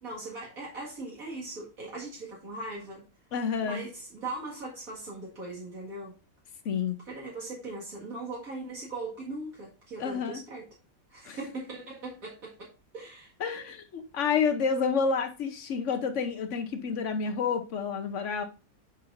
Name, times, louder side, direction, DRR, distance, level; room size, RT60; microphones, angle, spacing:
voice 1, 0.0-3.0 3.6-6.1 7.1-10.7 11.1-13.3, right 2 dB, 75° right, 2.4 m, -39 dB
voice 2, 3.3-3.8 6.6-7.0 10.0-10.4 11.3-11.4 13.4-18.4, left 6 dB, 60° left, 1.0 m, -29 dB
9.7 x 5.4 x 2.6 m
omnidirectional pair, 1.5 m